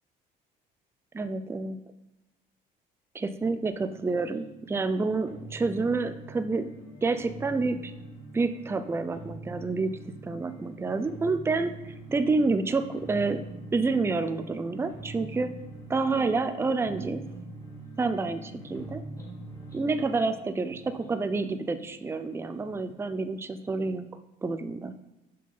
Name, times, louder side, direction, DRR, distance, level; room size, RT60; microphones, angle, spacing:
voice 1, 1.1-1.8 3.1-6.7 7.0-7.9 8.3-9.9 10.2-13.4 13.7-15.5 15.9-17.2 18.0-19.0 19.7-24.1 24.4-24.9, right 3 dB, 15° right, 10 dB, 0.5 m, -28 dB
sound 1, 3.7-22.8, right 2 dB, 20° left, 3.3 m, -44 dB
7.6 x 5.7 x 5.4 m, 1.0 s
cardioid pair, 110°, 17 cm